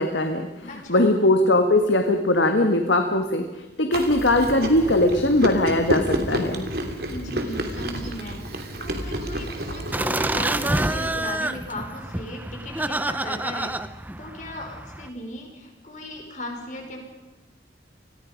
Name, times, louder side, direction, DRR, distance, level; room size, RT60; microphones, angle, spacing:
voice 1, 0.0-3.5 3.8-6.7, left 1 dB, 90° left, 5 dB, 1.7 m, -20 dB
voice 2, 0.7-1.2 7.1-13.7 14.2-17.0, left 1 dB, 45° left, 2 dB, 5.1 m, -37 dB
Chewing mastication, 3.9-11.1, right 1 dB, 60° right, 3.0 m, -30 dB
sound 1, 9.9-15.1, right 1 dB, 10° right, 0.7 m, -28 dB
29.0 x 21.0 x 5.2 m, 1.1 s
head